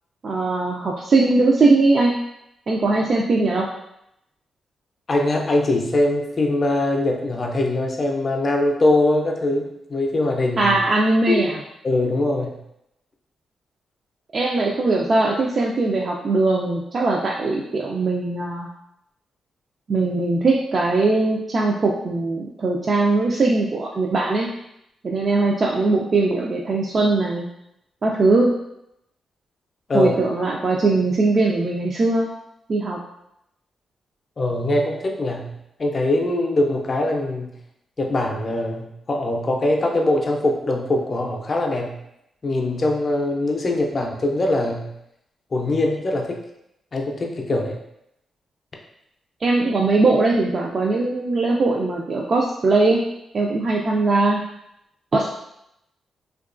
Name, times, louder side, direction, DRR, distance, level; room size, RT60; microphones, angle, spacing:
voice 1, 0.2-2.2 2.7-3.7 10.6-11.6 14.3-18.7 19.9-24.5 25.0-27.5 28.0-28.5 29.9-32.3 32.7-33.0 49.4-53.0 53.3-54.4 55.1-55.4, right 3 dB, 50° right, -2 dB, 0.3 m, -20 dB
voice 2, 5.1-10.8 11.3-11.4 11.8-12.6 29.9-30.1 34.4-37.6 38.0-42.0 42.4-44.9 45.5-46.4 46.9-47.8, left 2 dB, 45° left, 1 dB, 0.4 m, -22 dB
2.9 x 2.3 x 2.4 m, 0.81 s
cardioid pair, 75°, 0 cm